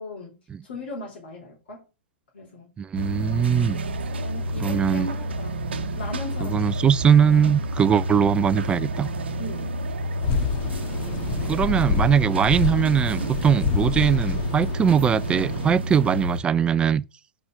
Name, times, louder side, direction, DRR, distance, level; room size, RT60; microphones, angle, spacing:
voice 1, 0.0-1.9 2.3-2.7 4.1-5.6 5.9-6.7 9.4-9.8 10.7-11.5, left 2 dB, 70° left, 3.6 m, -38 dB
voice 2, 2.8-3.8 4.6-5.1 6.4-9.1 11.5-17.0, right 7 dB, 15° right, 0.4 m, -21 dB
sound 1, 3.0-16.4, right 1 dB, 80° right, 0.9 m, -29 dB
sound 2, 10.2-15.7, left 5 dB, 45° left, 1.5 m, -28 dB
5.5 x 5.0 x 5.5 m
hypercardioid pair, 115°, 6 cm